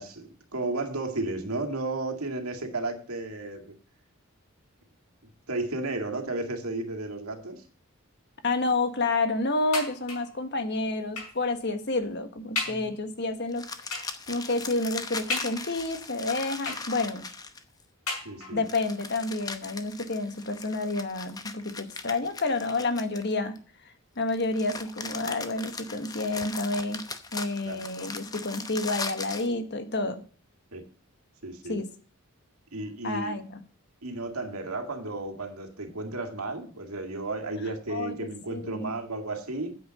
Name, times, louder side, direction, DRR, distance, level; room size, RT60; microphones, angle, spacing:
voice 1, 0.0-3.7 5.5-7.6 12.7-12.9 18.2-18.6 27.6-27.8 30.7-30.9 31.4-31.8 32.7-33.3 34.0-39.8, right 2 dB, 85° right, 5 dB, 2.2 m, -33 dB
voice 2, 8.4-13.6 13.9-14.0 14.3-17.2 18.5-23.6 24.2-27.0 27.3-30.2 31.7-31.9 33.0-33.6 37.9-38.1 38.5-39.0, left 2 dB, 50° left, 8 dB, 1.5 m, -29 dB
sound 1, 9.7-10.4 11.2-11.5 12.0-12.1 12.6-12.9 13.9-14.2 15.3-15.9 16.7-17.3 18.1-18.7 19.6-19.7 20.0-20.1, left 4 dB, 85° left, 5.2 m, -35 dB
sound 2, 13.5-17.8 18.6-23.6 24.3-29.5, left 4 dB, 15° left, 0.8 m, -39 dB
9.3 x 8.0 x 5.3 m, 0.41 s
head